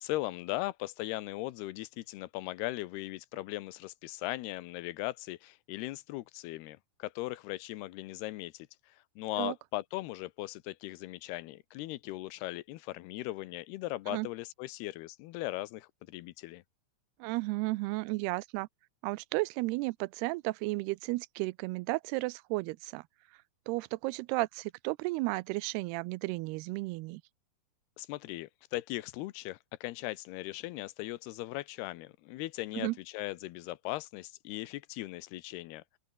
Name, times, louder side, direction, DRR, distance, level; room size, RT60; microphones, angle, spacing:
voice 1, 0.0-16.6 28.0-35.8, left 18 dB, 85° left, 2.9 m, -39 dB
voice 2, 17.2-18.7 19.0-23.0 23.7-27.2 32.8-33.0, right 22 dB, 90° right, 2.6 m, -33 dB
open air
omnidirectional pair, 4.5 m